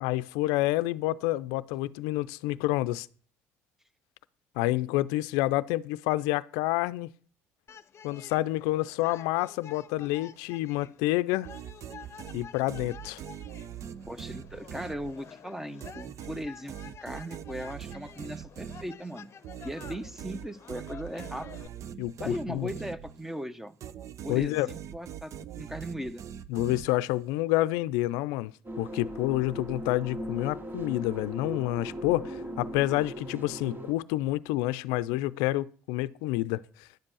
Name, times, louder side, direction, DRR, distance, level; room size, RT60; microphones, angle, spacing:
voice 1, 0.0-3.1 4.6-7.1 8.0-11.5 12.3-13.2 22.0-22.7 24.3-24.7 26.5-28.5 28.8-36.6, left 17 dB, 85° left, 0.5 m, -28 dB
sound 1, 7.7-21.7, left 7 dB, 45° left, 0.7 m, -50 dB
sound 2, 11.4-15.4 15.8-23.4 23.8-27.3, right 9 dB, 55° right, 0.8 m, -43 dB
voice 2, 14.1-19.3 19.6-21.7 22.2-23.8 24.2-26.2, equal, 5° right, 1.0 m, -38 dB
sound 3, 28.6-33.9, equal, 35° right, 2.5 m, -38 dB
11.0 x 7.6 x 6.2 m
supercardioid pair, 70°, 6 cm